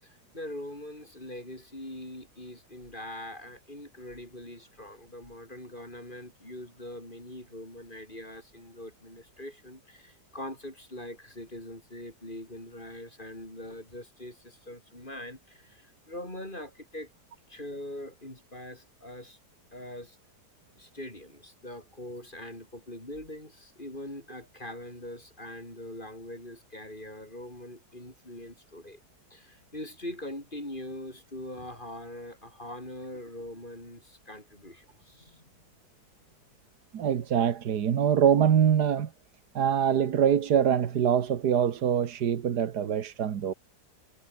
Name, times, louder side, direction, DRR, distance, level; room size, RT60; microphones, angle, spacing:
voice 1, 0.0-17.1 17.5-19.4 19.7-20.2 20.7-29.0 29.3-35.5, left 1 dB, 30° left, 6.6 m, -42 dB
voice 2, 36.9-39.1 39.5-43.5, right 8 dB, 85° right, 1.8 m, -24 dB
omnidirectional pair, 1.7 m